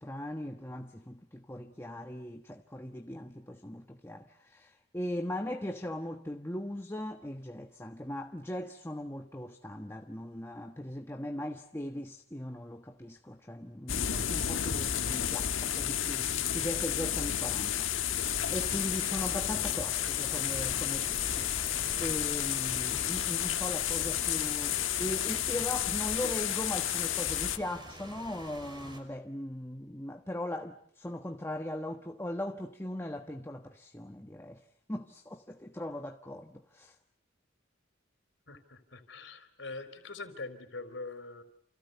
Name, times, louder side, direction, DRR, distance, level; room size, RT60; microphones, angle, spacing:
voice 1, 0.0-18.2 18.5-21.5 22.0-34.6 34.9-36.9, left 1 dB, 15° left, 1.3 m, -39 dB
sound 1, 13.9-27.6, left 10 dB, 80° left, 1.4 m, -31 dB
Rain, 18.2-29.0, right 1 dB, 25° right, 5.8 m, -46 dB
voice 2, 38.5-41.4, left 3 dB, 65° left, 4.3 m, -43 dB
29.5 x 29.5 x 6.9 m
head